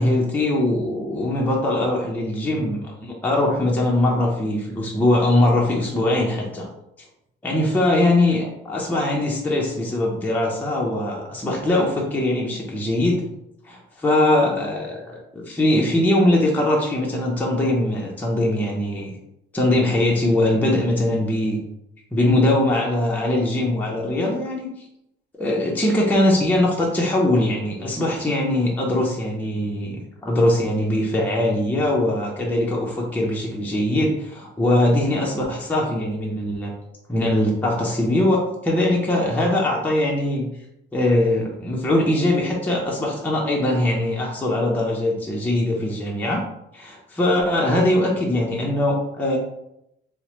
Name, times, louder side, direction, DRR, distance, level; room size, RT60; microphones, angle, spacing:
voice 1, 0.0-6.7 7.4-13.2 13.6-19.1 19.5-21.6 22.1-24.7 25.4-36.7 37.1-40.5 40.9-46.4 46.7-49.4, left 1 dB, 10° left, -3 dB, 0.6 m, -21 dB
4.4 x 2.1 x 2.9 m, 0.82 s
cardioid pair, 120°, 20 cm